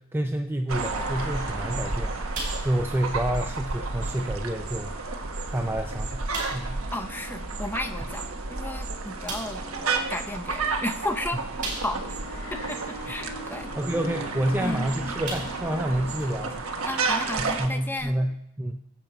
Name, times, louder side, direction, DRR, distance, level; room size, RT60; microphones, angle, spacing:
voice 1, 0.0-5.3 5.5-6.8 13.8-16.7 17.4-18.8, right 1 dB, 10° right, 5 dB, 0.4 m, -29 dB
sound 1, 0.7-17.7, right 3 dB, 75° right, 1.3 m, -32 dB
sound 2, 0.9-17.9, equal, 85° left, 4.7 m, -44 dB
sound 3, 2.3-3.0 3.3-3.5 4.1-4.2 5.0-5.1 5.5-5.6 6.3-6.7 8.4-8.5 9.3-9.7 11.6-12.2 12.7-12.8 14.6-14.8 15.2-15.7 16.2-16.3 18.0-18.1, right 2 dB, 40° right, 4.7 m, -36 dB
voice 2, 6.9-9.6 10.1-11.4 11.8-12.0 12.5-13.7 14.6-14.9 16.8-18.2, left 1 dB, 10° left, 7 dB, 0.8 m, -33 dB
23.5 x 8.0 x 4.4 m, 0.82 s
head